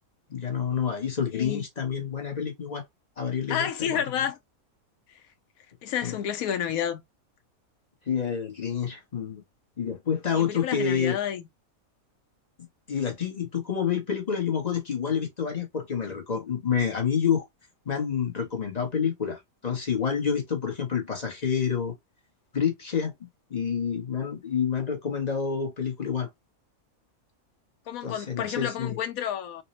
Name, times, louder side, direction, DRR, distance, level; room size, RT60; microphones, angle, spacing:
voice 1, 0.3-2.8 3.2-4.1 6.0-6.2 8.1-9.4 9.8-11.2 12.6-17.5 17.9-21.9 22.5-23.1 23.5-26.3 28.0-29.0, left 7 dB, 35° left, 0.8 m, -28 dB
voice 2, 1.3-1.6 3.5-4.4 5.8-7.0 10.3-11.4 27.9-29.6, left 9 dB, 80° left, 1.1 m, -30 dB
4.1 x 2.0 x 2.8 m
omnidirectional pair, 1.5 m